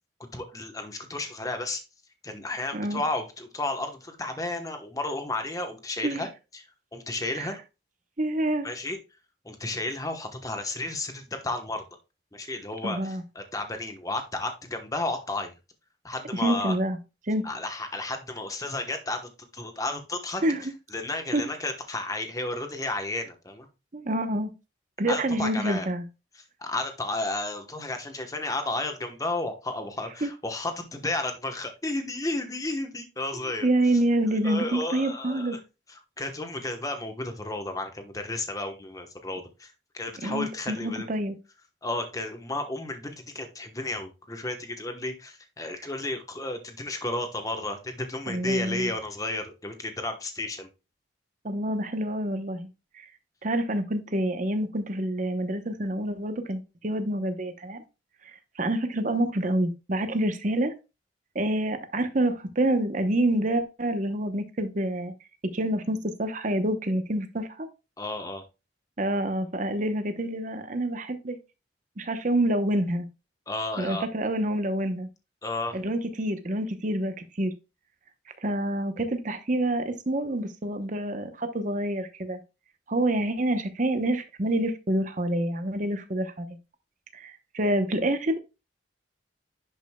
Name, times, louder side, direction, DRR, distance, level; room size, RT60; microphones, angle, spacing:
voice 1, 0.2-1.8 2.2-6.3 6.5-6.6 6.9-7.6 8.6-9.0 9.4-11.8 12.3-15.5 16.0-16.8 17.4-20.4 20.9-23.7 25.1-25.9 26.6-33.7 34.4-35.6 35.9-41.1 41.8-50.7 68.0-68.4 73.5-74.1 75.4-75.8, left 2 dB, 20° left, 1.0 m, -32 dB
voice 2, 8.2-8.7 12.8-13.2 16.4-17.0 17.3-17.4 20.4-20.6 21.3-21.4 23.9-24.5 25.0-26.0 30.2-30.3 33.3-35.6 40.2-41.3 48.3-48.9 51.4-52.7 52.9-53.1 53.4-57.8 58.6-60.7 61.3-65.1 65.5-67.7 69.0-71.4 72.0-73.1 73.8-75.1 75.7-77.5 78.4-82.4 82.9-86.5 87.1-88.4, right 1 dB, 45° right, 0.9 m, -27 dB
10.5 x 5.3 x 2.3 m
head